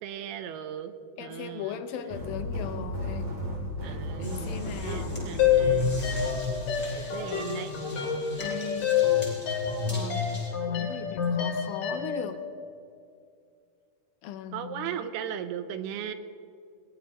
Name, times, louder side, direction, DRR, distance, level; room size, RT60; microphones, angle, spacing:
voice 1, 0.0-1.8 2.8-3.0 3.8-6.1 6.9-7.7 11.4-11.5 14.5-16.1, right 9 dB, 85° right, 9 dB, 2.8 m, -37 dB
voice 2, 1.2-3.3 3.8-5.2 6.8-7.1 8.4-8.9 9.9-10.4 10.7-12.4 14.2-15.0, left 9 dB, 80° left, 9 dB, 2.3 m, -39 dB
sound 1, 2.1-7.3, left 2 dB, 45° right, 4.0 m, -35 dB
sound 2, 4.2-10.5, left 1 dB, 10° left, 4.3 m, -44 dB
sound 3, 5.4-12.3, left 7 dB, 60° left, 3.8 m, -27 dB
21.5 x 18.5 x 3.0 m, 2.4 s
omnidirectional pair, 4.5 m